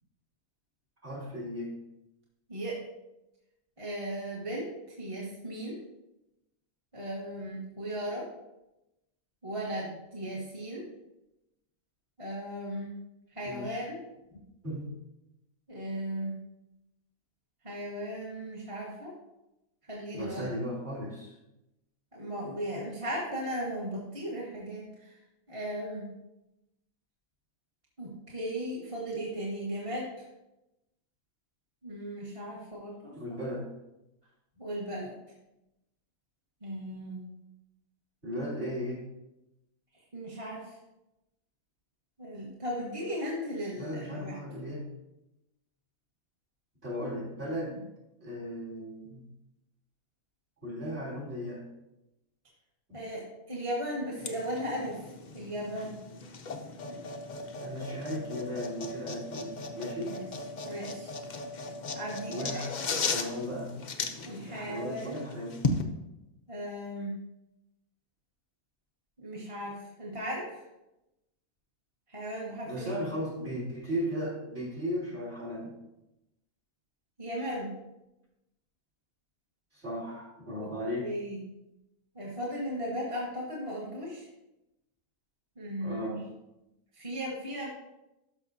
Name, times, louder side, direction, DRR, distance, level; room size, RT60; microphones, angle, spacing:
voice 1, 1.0-1.7 13.4-13.8 14.6-14.9 20.1-21.3 33.1-33.7 38.2-39.0 43.7-44.9 46.8-47.8 48.2-49.2 50.6-51.6 52.9-53.0 57.6-60.1 62.3-63.7 64.5-65.7 72.6-75.7 79.7-81.1 85.8-86.2, equal, 40° right, -7 dB, 3.6 m, -36 dB
voice 2, 3.8-5.8 6.9-8.3 9.4-10.9 12.2-12.9 13.3-14.0 15.7-16.4 17.6-19.1 19.9-20.5 22.1-25.2 25.5-26.1 28.0-30.3 31.8-33.4 34.6-35.1 36.6-37.3 40.1-40.8 42.2-44.4 47.7-47.8 52.9-55.1 55.3-55.9 60.1-60.2 60.6-61.1 61.9-62.6 64.2-65.2 66.5-67.2 69.2-70.6 72.1-72.9 77.2-77.7 80.5-80.7 81.0-81.5 82.1-84.3 85.6-86.2 86.9-87.7, equal, 20° right, -4 dB, 1.3 m, -36 dB
sound 1, 54.2-65.8, left 3 dB, 55° left, 0.5 m, -37 dB
12.5 x 5.7 x 2.7 m, 0.93 s
omnidirectional pair, 1.6 m